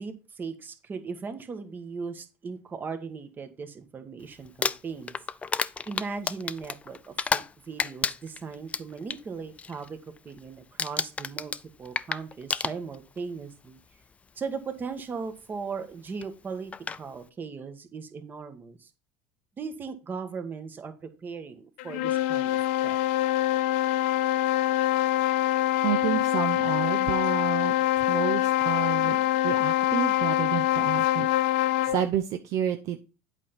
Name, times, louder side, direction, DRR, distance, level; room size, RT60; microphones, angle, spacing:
voice 1, 0.0-5.1 5.9-10.0 10.2-11.5 11.8-13.8 14.4-18.9 19.6-22.6 22.8-23.0, right 5 dB, 30° right, 8 dB, 1.4 m, -38 dB
Crumpling crinkling, 4.4-7.5 7.8-9.2 9.6-9.9 10.2-10.5 10.8-13.2 14.1-14.2 16.2-16.3 16.7-17.0, left 5 dB, 20° left, 0.4 m, -31 dB
sound 1, 21.8-32.1, left 14 dB, 80° left, 0.5 m, -25 dB
voice 2, 25.8-29.2 29.4-31.3 31.8-33.0, right 10 dB, 55° right, 6 dB, 0.7 m, -30 dB
8.3 x 5.2 x 4.3 m, 0.32 s
supercardioid pair, 105°, 7 cm